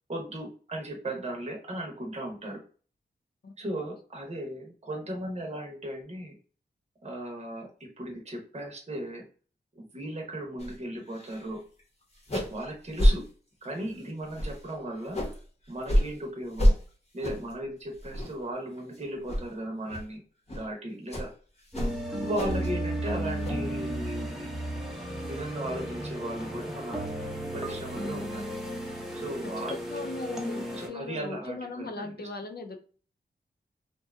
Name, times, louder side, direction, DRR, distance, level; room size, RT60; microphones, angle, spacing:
voice 1, 0.1-2.6 3.6-6.3 7.0-9.3 9.7-11.6 12.3-13.3 13.6-15.2 15.7-16.8 17.1-20.2 20.5-21.3 22.2-24.5 25.2-27.0 27.5-28.5 29.1-29.8 30.8-32.3, right 1 dB, 35° right, 1 dB, 0.8 m, -36 dB
sound 1, 10.6-10.8 11.1-11.5 11.8-11.9 12.2-12.6 12.9-13.2 13.6-13.9 14.3-15.4 15.8-16.1 16.5-16.8 17.2-17.5 17.9-18.5 18.8-19.0 19.3-19.4 19.9-20.0 20.5-20.7 21.1-21.3 21.7-22.7 23.0-23.5, equal, 35° left, 0.8 m, -27 dB
sound 2, 21.7-30.9, right 1 dB, ahead, 0.6 m, -34 dB
voice 2, 29.6-32.8, left 3 dB, 60° left, 4 dB, 0.5 m, -39 dB
2.7 x 2.2 x 2.4 m, 0.41 s
wide cardioid pair, 70°, 18 cm